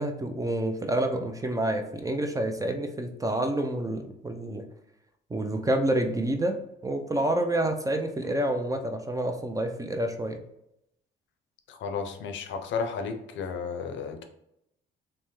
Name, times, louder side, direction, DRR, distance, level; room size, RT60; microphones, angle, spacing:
voice 1, 0.0-4.7 5.3-10.4, right 1 dB, 15° right, 0.4 m, -28 dB
voice 2, 11.7-14.2, left 5 dB, 70° left, 0.5 m, -33 dB
3.2 x 2.1 x 3.0 m
cardioid pair, 90°, 20 cm